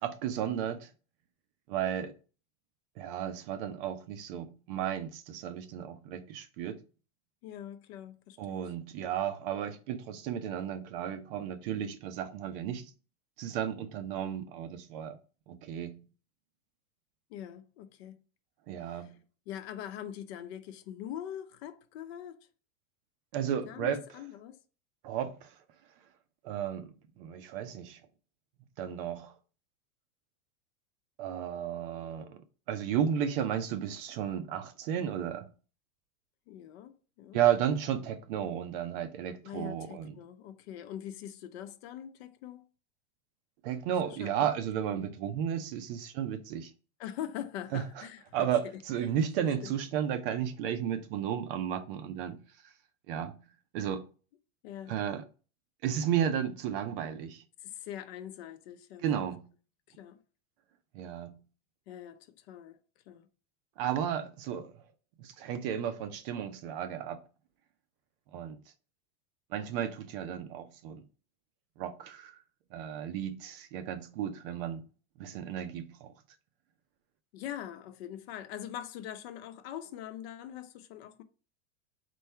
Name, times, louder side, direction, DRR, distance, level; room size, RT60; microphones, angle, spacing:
voice 1, 0.0-0.9 1.7-2.1 3.0-6.8 8.4-12.9 13.4-15.2 15.5-16.0 18.7-19.1 23.3-24.0 25.0-25.5 26.4-28.0 28.8-29.3 31.2-32.4 32.7-35.5 37.3-40.1 43.6-46.7 47.7-48.0 48.3-52.7 53.1-53.4 53.7-54.1 54.9-55.2 55.8-57.4 59.0-59.5 60.9-61.4 63.8-64.7 65.2-67.2 68.3-68.6 69.5-71.0 71.8-72.4 72.7-74.8 75.2-76.1, right 9 dB, 40° right, 0.5 m, -33 dB
voice 2, 7.4-8.7 17.3-18.2 18.8-19.1 19.5-22.4 23.6-24.6 36.5-37.4 39.4-42.7 44.1-44.5 47.0-48.8 49.4-49.7 54.6-55.0 57.6-59.3 59.9-60.2 61.9-63.3 77.3-81.2, left 10 dB, 50° left, 0.5 m, -43 dB
4.5 x 2.3 x 4.2 m
supercardioid pair, 150°, 42 cm